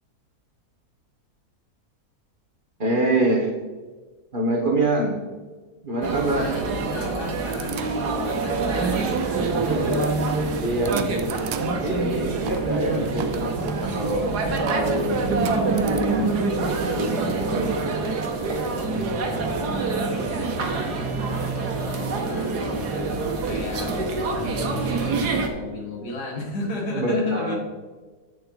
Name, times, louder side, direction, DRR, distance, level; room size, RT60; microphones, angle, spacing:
voice 1, 2.8-3.5 4.3-5.2 5.8-6.5 9.2-11.3 11.8-14.2 14.5-17.8 26.9-27.5, right 2 dB, 35° right, 0 dB, 1.2 m, -26 dB
sound 1, 6.0-25.5, right 3 dB, 90° right, 1.6 m, -26 dB
voice 2, 6.3-9.2 19.9-23.2 23.4-27.6, left 2 dB, 85° left, 0 dB, 2.1 m, -34 dB
sound 2, 7.5-16.0, right 8 dB, 70° right, 0.6 m, -39 dB
7.9 x 6.9 x 3.9 m, 1.4 s
omnidirectional pair, 1.7 m